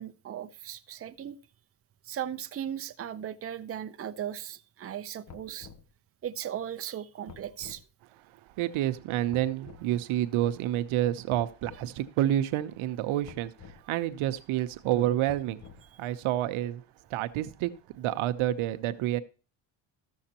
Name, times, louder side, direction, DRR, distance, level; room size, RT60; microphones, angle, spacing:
voice 1, 0.0-1.4 2.1-5.7 6.2-7.8, right 10 dB, 30° right, 0.6 m, -37 dB
sound 1, 5.3-5.9 7.3-7.8 9.3-9.9 11.3-11.9 13.2-13.8 15.3-16.0, left 6 dB, 35° left, 0.8 m, -49 dB
voice 2, 8.6-15.6 16.0-16.8 17.1-19.2, right 13 dB, 85° right, 0.9 m, -29 dB
14.0 x 6.5 x 2.8 m
cardioid pair, 100°, 48 cm